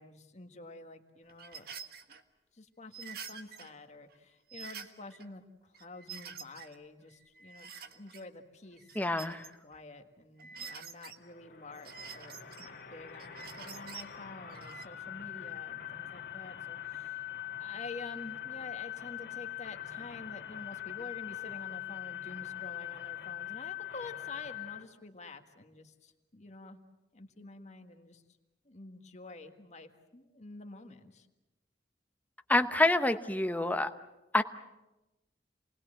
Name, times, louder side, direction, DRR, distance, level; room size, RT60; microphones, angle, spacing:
voice 1, 0.0-1.7 2.5-9.0 9.2-17.2 17.6-26.8 27.1-28.2 28.6-31.3, left 3 dB, 40° left, 6 dB, 1.7 m, -49 dB
sound 1, 1.3-2.2 2.9-3.7 4.1-4.2 4.5-5.3 5.7-6.8 7.1-8.2 8.7-9.8 10.4-11.2 11.7-12.7 13.1-14.1 14.5-14.8, right 6 dB, 55° right, 1.5 m, -47 dB
voice 2, 8.9-9.5 32.5-33.9 34.3-34.4, left 2 dB, 10° left, 8 dB, 0.9 m, -27 dB
sound 2, 11.2-24.8, left 12 dB, 60° left, 2.4 m, -42 dB
28.0 x 20.0 x 7.8 m, 1.0 s
head